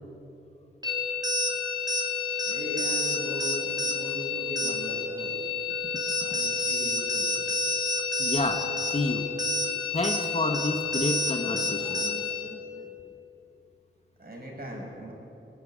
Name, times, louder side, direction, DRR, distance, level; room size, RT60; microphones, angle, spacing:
sound 1, 0.8-12.4, left 3 dB, 20° right, 3.9 m, -29 dB
voice 1, 2.4-5.4 6.2-7.3 14.2-15.1, equal, 50° right, -2 dB, 6.0 m, -38 dB
voice 2, 8.2-9.3 9.9-13.0, left 2 dB, 30° left, 5 dB, 1.3 m, -30 dB
22.5 x 11.5 x 9.9 m, 3.0 s
wide cardioid pair, 95°, 20 cm